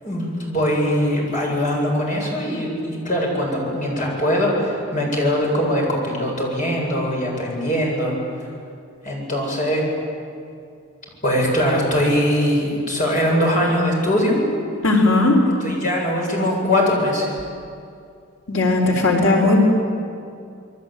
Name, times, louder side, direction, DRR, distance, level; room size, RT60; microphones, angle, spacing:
voice 1, 0.0-8.2 9.0-9.9 11.2-14.4 15.6-17.3, equal, 40° left, -2 dB, 7.9 m, -21 dB
voice 2, 14.8-15.4 18.5-19.6, left 2 dB, 80° left, 1 dB, 4.1 m, -16 dB
28.0 x 22.0 x 9.1 m, 2.4 s
head